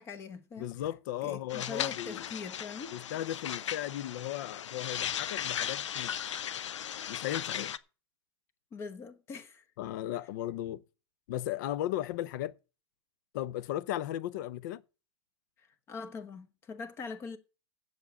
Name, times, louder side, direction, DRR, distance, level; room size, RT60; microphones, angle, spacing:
voice 1, 0.0-0.7 1.2-3.0 8.7-9.6 15.6-17.4, left 4 dB, 15° left, 1.0 m, -42 dB
voice 2, 0.6-2.3 2.9-6.4 7.1-7.7 9.8-10.8 11.3-12.5 13.3-14.8, left 13 dB, 40° left, 0.5 m, -36 dB
sound 1, 1.5-7.8, left 9 dB, 85° left, 0.7 m, -37 dB
7.9 x 7.2 x 8.2 m
supercardioid pair, 165°, 15 cm